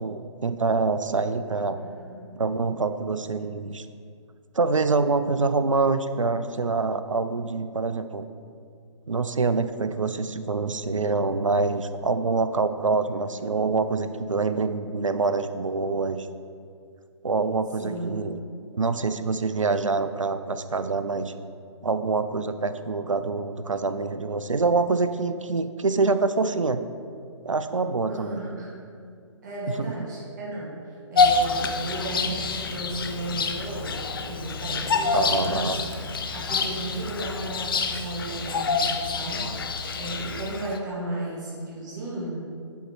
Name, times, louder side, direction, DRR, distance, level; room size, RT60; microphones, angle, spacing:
voice 1, 0.0-1.8 2.4-3.9 4.5-8.3 9.1-16.3 17.2-18.4 18.7-21.3 21.8-26.8 27.4-28.4 29.7-30.1 35.1-35.8, right 4 dB, 85° right, 11 dB, 0.4 m, -25 dB
voice 2, 1.8-2.3 13.3-13.5 17.8-18.2 28.0-28.7 29.4-35.8 36.3-39.5 40.0-42.4, right 1 dB, 35° right, -4 dB, 1.7 m, -34 dB
Bird vocalization bird call bird song, 31.2-40.8, left 4 dB, 45° left, 0.5 m, -27 dB
7.1 x 4.2 x 4.5 m, 2.3 s
figure-of-eight pair, 140°, 16 cm